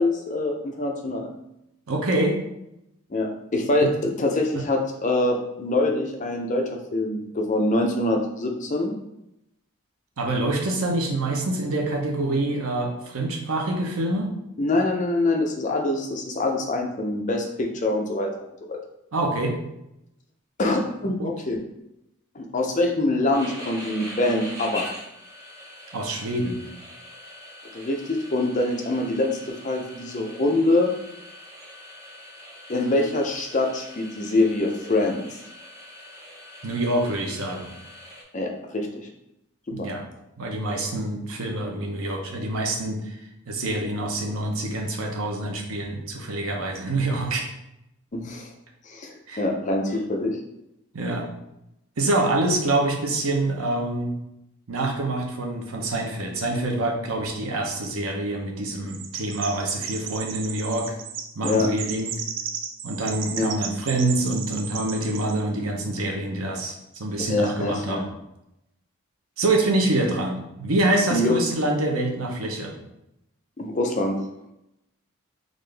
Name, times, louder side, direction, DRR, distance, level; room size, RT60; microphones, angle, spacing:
voice 1, 0.0-1.3 3.1-8.9 14.6-18.3 18.7-18.8 20.6-21.6 22.4-24.9 27.7-30.9 32.7-35.3 38.3-39.1 39.8-39.9 48.1-48.5 48.9-50.4 61.4-61.7 63.3-63.5 67.3-68.0 71.1-71.4 73.6-74.2, left 2 dB, 35° left, 2 dB, 0.4 m, -24 dB
voice 2, 1.9-2.4 10.2-14.3 19.1-19.6 21.1-21.3 25.9-26.6 36.6-37.7 39.7-40.0 40.4-43.2 43.5-47.5 49.3-49.4 50.9-51.3 52.0-54.1 54.7-61.0 61.4-62.2 62.8-68.0 69.4-72.7, right 2 dB, 80° right, 1 dB, 0.7 m, -26 dB
sound 1, 23.3-38.2, equal, 15° right, 0.8 m, -42 dB
Chirp tweet, 58.9-65.4, right 7 dB, 60° right, 0.3 m, -34 dB
3.8 x 2.5 x 3.3 m, 0.85 s
head